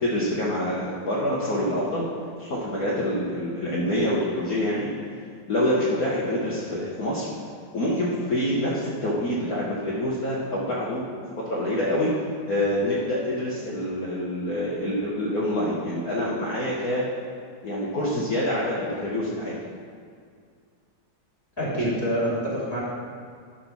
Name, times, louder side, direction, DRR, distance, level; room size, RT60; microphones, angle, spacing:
voice 1, 0.0-2.1 2.4-4.9 5.5-7.3 7.7-11.1 11.4-12.1 12.4-17.0 17.6-19.5 21.8-21.9, left 1 dB, 55° left, -6 dB, 1.6 m, -26 dB
voice 2, 21.6-22.9, equal, 10° left, -6 dB, 2.5 m, -26 dB
11.5 x 4.2 x 5.8 m, 2.2 s
omnidirectional pair, 2.0 m